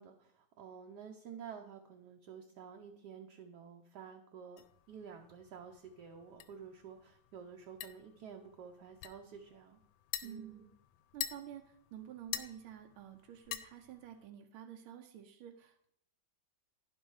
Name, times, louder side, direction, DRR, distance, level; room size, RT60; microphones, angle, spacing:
voice 1, 0.0-9.8 10.2-10.7, right 7 dB, 65° right, 3 dB, 1.1 m, -51 dB
sound 1, 4.6-14.3, left 11 dB, 75° left, 1.2 m, -48 dB
voice 2, 10.2-10.7 11.1-15.9, right 9 dB, 85° right, 4 dB, 1.5 m, -50 dB
10.5 x 5.4 x 4.7 m, 0.72 s
omnidirectional pair, 2.2 m